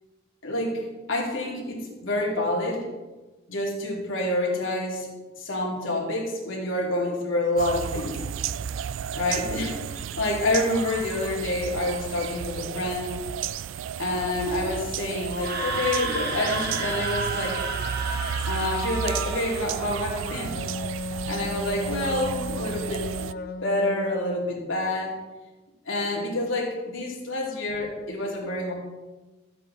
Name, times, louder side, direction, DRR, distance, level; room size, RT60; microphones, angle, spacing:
voice 1, 0.4-2.9 3.5-5.1 5.4-8.2 9.1-13.2 14.0-17.6 18.5-20.7 21.3-23.3 23.6-25.2 25.9-28.7, left 1 dB, 85° left, -2 dB, 2.7 m, -28 dB
sound 1, 7.6-23.3, right 8 dB, 75° right, 0.3 m, -33 dB
Screaming, 15.3-19.6, right 3 dB, 55° right, 1.6 m, -31 dB
Wind instrument woodwind instrument, 20.5-24.6, left 2 dB, 50° left, 0.5 m, -35 dB
13.5 x 7.6 x 4.0 m, 1.2 s
head